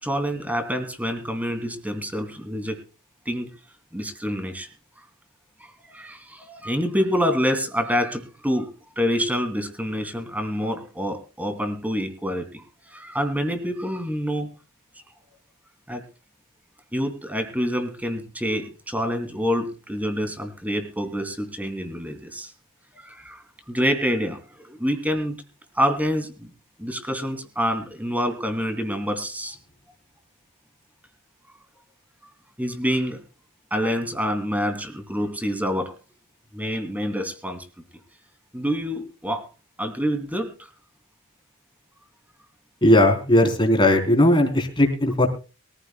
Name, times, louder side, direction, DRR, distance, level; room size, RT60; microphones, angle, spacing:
voice 1, 0.0-2.8 3.2-3.5 3.9-4.7 5.9-8.7 9.0-14.5 15.9-16.0 16.9-22.5 22.9-23.4 23.7-25.4 25.7-26.5 26.8-29.6 32.6-33.2 33.7-35.9 36.5-37.6 38.5-39.4 39.8-40.5, equal, 5° right, 7 dB, 2.8 m, -27 dB
voice 2, 42.8-45.3, left 1 dB, 20° left, 3 dB, 3.9 m, -18 dB
23.0 x 15.0 x 2.3 m, 0.33 s
head